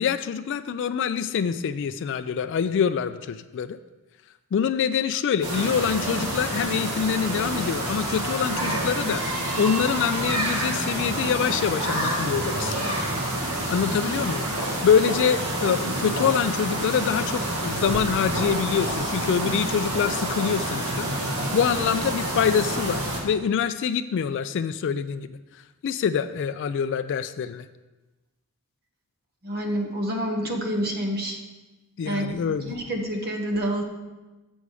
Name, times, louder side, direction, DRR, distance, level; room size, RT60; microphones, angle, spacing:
voice 1, 0.0-3.8 4.5-9.2 9.6-12.9 13.7-14.5 14.8-21.1 21.5-25.3 25.8-27.6 32.0-32.7, left 7 dB, 55° left, 11 dB, 0.3 m, -25 dB
sound 1, 5.4-23.2, right 1 dB, 80° right, 1.5 m, -28 dB
voice 2, 29.4-31.4 32.0-33.8, equal, 45° right, 2 dB, 1.1 m, -28 dB
6.8 x 6.2 x 4.8 m, 1.1 s
head